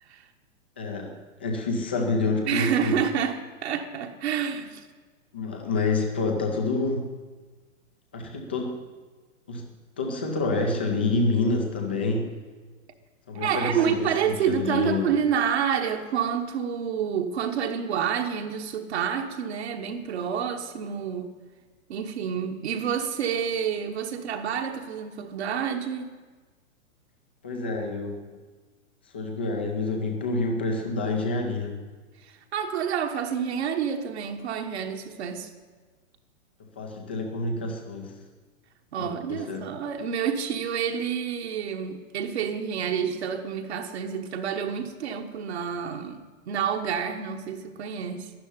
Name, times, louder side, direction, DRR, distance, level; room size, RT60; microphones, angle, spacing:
voice 1, 0.8-1.1 1.4-3.0 5.3-7.1 8.1-8.8 9.5-9.7 10.0-12.3 13.3-15.1 27.4-28.4 29.1-31.8 36.8-38.1 39.0-39.6, left 3 dB, 10° left, 0.4 m, -28 dB
voice 2, 2.5-4.8 13.3-21.3 21.9-26.2 32.2-35.5 38.9-46.2 46.5-48.3, right 7 dB, 50° right, 1.4 m, -28 dB
12.0 x 11.0 x 9.8 m
hypercardioid pair, 165°, 41 cm